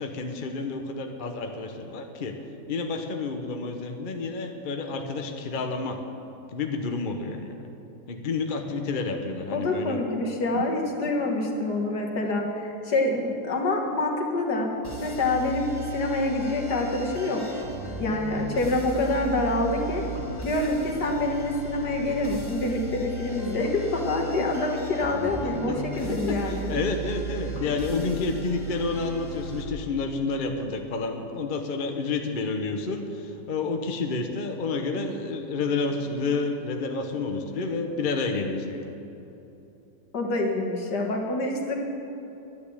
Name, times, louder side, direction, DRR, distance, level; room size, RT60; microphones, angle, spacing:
voice 1, 0.0-2.4 2.7-6.0 6.5-7.7 8.1-10.0 10.5-10.7 11.0-11.1 24.4-24.5 25.7-39.0, left 3 dB, 40° left, 4 dB, 0.8 m, -30 dB
voice 2, 9.5-14.7 15.0-17.4 18.0-20.0 20.4-26.7 40.1-41.8, left 2 dB, 65° left, 0 dB, 2.2 m, -26 dB
sound 1, 14.8-29.7, right 1 dB, 15° left, 1.6 m, -36 dB
12.0 x 9.6 x 8.6 m, 3.0 s
omnidirectional pair, 2.0 m